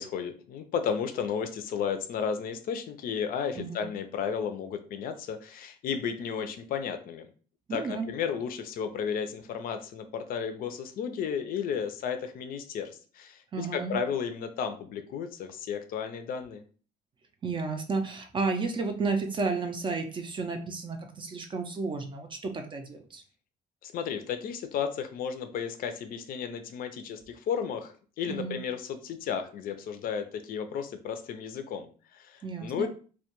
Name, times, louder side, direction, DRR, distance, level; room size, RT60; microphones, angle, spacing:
voice 1, 0.0-7.3 7.7-16.6 23.8-32.9, left 7 dB, 60° left, 8 dB, 0.4 m, -33 dB
voice 2, 3.5-3.9 7.7-8.1 13.5-14.0 17.4-23.2 28.3-28.6 32.4-32.9, right 4 dB, 30° right, 5 dB, 0.4 m, -32 dB
2.2 x 2.2 x 2.8 m, 0.40 s
cardioid pair, 110°, 17 cm